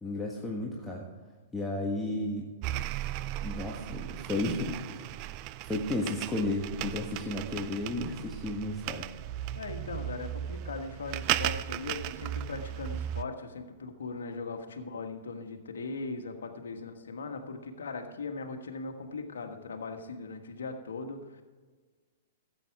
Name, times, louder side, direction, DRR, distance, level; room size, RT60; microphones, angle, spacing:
voice 1, 0.0-1.1 1.5-2.5 3.4-5.3 5.6-9.1, left 2 dB, 10° left, -3 dB, 1.5 m, -33 dB
sound 1, 2.6-13.2, right 13 dB, 40° right, 0.4 m, -36 dB
voice 2, 9.5-21.4, left 4 dB, 70° left, 5 dB, 1.5 m, -39 dB
14.0 x 8.5 x 4.8 m, 1.4 s
figure-of-eight pair, 110°, 0 cm